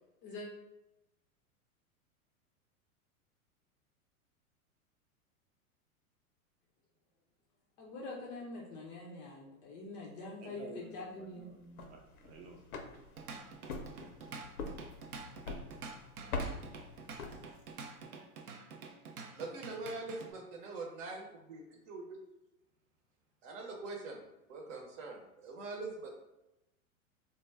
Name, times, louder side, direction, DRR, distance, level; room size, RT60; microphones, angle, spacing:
voice 1, 7.8-11.5, left 2 dB, 25° left, -3 dB, 0.3 m, -45 dB
voice 2, 10.4-12.6, right 3 dB, 35° right, 2 dB, 0.6 m, -52 dB
sound 1, 11.6-17.9, left 3 dB, 85° left, 0.6 m, -44 dB
Drum kit / Drum, 12.9-20.3, right 4 dB, 90° right, 0.5 m, -48 dB
voice 3, 19.3-22.2 23.4-24.2 24.5-26.1, right 3 dB, 60° right, 1 dB, 0.8 m, -43 dB
2.2 x 2.2 x 3.3 m, 0.92 s
hypercardioid pair, 105°, 43 cm